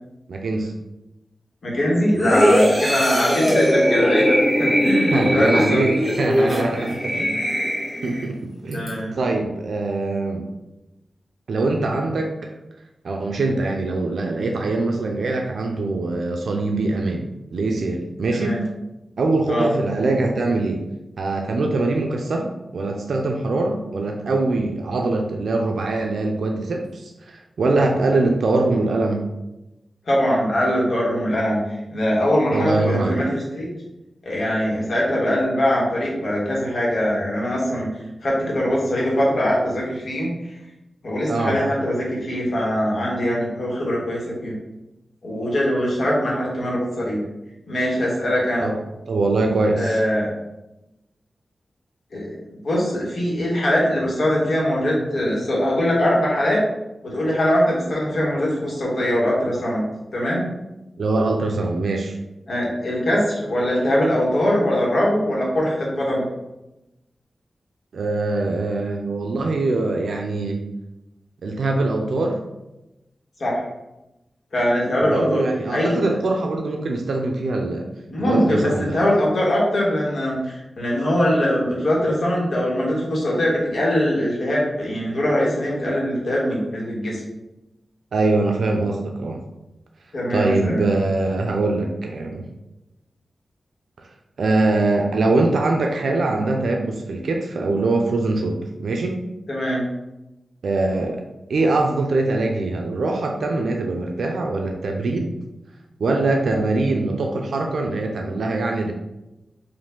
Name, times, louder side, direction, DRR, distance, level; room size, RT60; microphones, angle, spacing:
voice 1, 0.3-0.7 5.1-7.4 8.0-10.5 11.5-12.5 13.0-18.7 19.2-20.8 21.2-29.3 32.5-33.3 41.3-41.6 48.6-48.8 49.1-50.0 61.0-62.2 67.9-70.6 71.4-72.4 75.0-77.9 78.2-79.1 88.1-89.4 90.3-92.4 94.4-99.3 100.6-101.2 101.5-105.4 106.0-108.9, right 2 dB, 85° right, 2 dB, 0.4 m, -23 dB
voice 2, 1.6-5.8 6.3-6.9 8.7-9.1 18.4-18.6 19.5-19.7 30.1-31.6 31.9-33.7 34.2-37.9 38.2-40.3 41.0-44.6 45.2-47.2 47.7-48.7 49.7-50.3 52.1-52.3 52.6-56.6 57.0-59.8 60.1-60.5 62.5-66.2 73.4-73.6 74.5-75.4 75.7-75.9 78.1-87.2 90.1-90.9 99.5-99.9, equal, 65° left, -4 dB, 1.4 m, -22 dB
sound 1, 2.2-8.3 8.7-8.9, equal, 10° left, 1.3 m, -20 dB
4.6 x 2.5 x 3.7 m, 0.96 s
wide cardioid pair, 140°, 0 cm